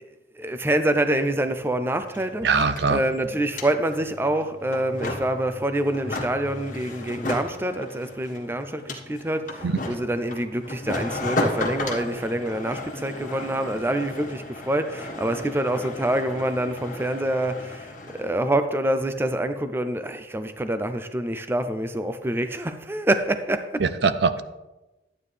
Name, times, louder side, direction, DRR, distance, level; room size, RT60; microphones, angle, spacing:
voice 1, 0.4-2.5 2.9-23.8, right 1 dB, 10° right, 9 dB, 0.4 m, -26 dB
sound 1, 1.4-1.5 1.7-18.3, left 2 dB, 45° left, 1.5 m, -34 dB
voice 2, 2.4-3.0 9.6-9.8 23.8-24.4, right 4 dB, 65° right, 12 dB, 0.5 m, -22 dB
12.0 x 9.1 x 3.3 m, 1.0 s
head